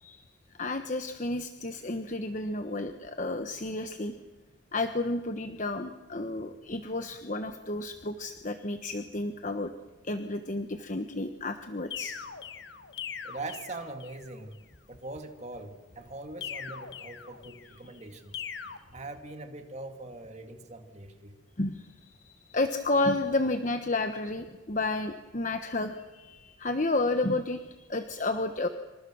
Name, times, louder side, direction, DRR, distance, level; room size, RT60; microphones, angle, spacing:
voice 1, 0.6-4.1 4.7-9.7 10.0-12.2 21.6-22.1 22.5-28.7, left 2 dB, 40° left, 7 dB, 1.2 m, -31 dB
sound 1, 11.9-14.3 16.4-17.8 18.3-18.8, left 7 dB, 60° left, 1.6 m, -41 dB
voice 2, 13.2-14.6 14.9-18.4 18.9-21.4, right 2 dB, 35° right, 5 dB, 2.4 m, -42 dB
27.5 x 25.5 x 6.3 m, 1.2 s
head